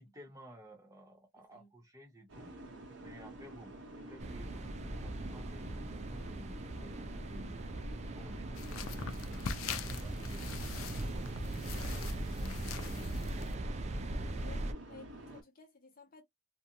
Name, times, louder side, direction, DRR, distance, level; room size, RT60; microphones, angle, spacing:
voice 1, 0.0-2.5 3.0-9.4 9.9-11.2 11.8-13.4, equal, 15° right, 0.8 m, -54 dB
voice 2, 1.4-1.7 14.2-16.2, left 4 dB, 45° left, 0.7 m, -56 dB
sound 1, 2.3-15.4, right 2 dB, 60° right, 0.9 m, -49 dB
sound 2, 4.2-14.7, right 1 dB, 30° right, 0.3 m, -40 dB
sound 3, 8.6-13.6, left 6 dB, 80° left, 0.4 m, -44 dB
2.5 x 2.1 x 2.9 m
head